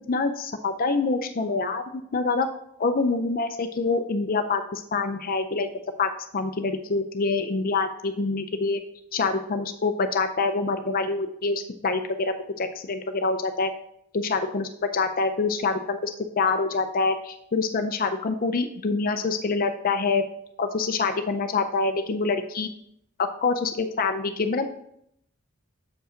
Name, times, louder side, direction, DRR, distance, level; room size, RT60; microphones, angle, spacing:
voice 1, 0.1-2.5 2.8-5.7 6.0-8.8 9.1-13.7 14.1-20.2 20.6-22.7 23.4-24.7, left 4 dB, 40° left, 7 dB, 0.5 m, -26 dB
7.7 x 5.2 x 5.0 m, 0.73 s
head